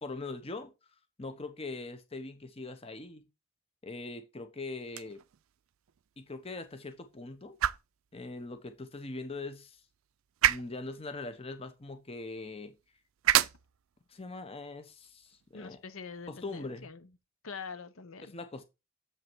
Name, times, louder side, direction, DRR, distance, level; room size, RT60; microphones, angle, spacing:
voice 1, 0.0-0.7 1.2-3.3 3.8-5.2 6.2-7.6 8.1-9.8 10.4-12.7 14.1-15.8 16.3-16.9 18.2-18.7, left 3 dB, 25° left, 0.8 m, -41 dB
sound 1, 4.8-16.9, right 12 dB, 70° right, 0.4 m, -35 dB
voice 2, 15.5-17.1 17.4-18.3, left 5 dB, 70° left, 0.9 m, -44 dB
7.4 x 5.6 x 4.5 m
head